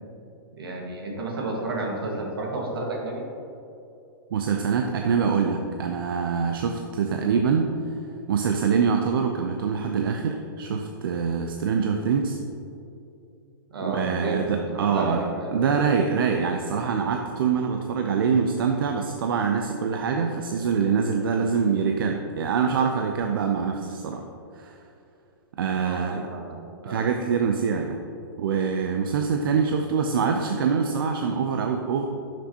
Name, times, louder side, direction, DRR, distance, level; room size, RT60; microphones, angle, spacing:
voice 1, 0.6-3.2 13.7-15.5 25.8-26.6 26.8-27.0, right 2 dB, 90° right, 0 dB, 1.6 m, -31 dB
voice 2, 4.3-7.7 8.3-12.4 13.8-15.2 15.5-24.2 24.6-24.8 25.6-26.3 26.8-28.0 28.4-32.1, right 6 dB, 75° right, 4 dB, 0.6 m, -24 dB
9.7 x 6.1 x 2.9 m, 2.7 s
hypercardioid pair, 130°, 12 cm